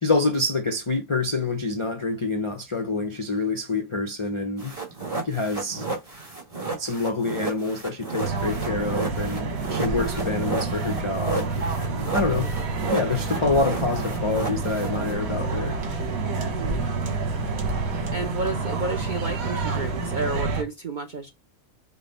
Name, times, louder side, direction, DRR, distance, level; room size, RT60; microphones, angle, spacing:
voice 1, 0.0-4.7 5.2-5.9 6.8-12.5 12.9-15.8, left 3 dB, 45° left, 0.3 m, -27 dB
sound 1, 4.6-15.1, right 3 dB, 25° right, 1.4 m, -32 dB
sound 2, 8.2-20.6, right 3 dB, 70° right, 1.5 m, -28 dB
voice 2, 9.7-10.0 12.0-12.5 16.4-16.9 18.1-21.3, right 3 dB, 50° right, 0.6 m, -32 dB
5.2 x 2.2 x 4.0 m
omnidirectional pair, 1.6 m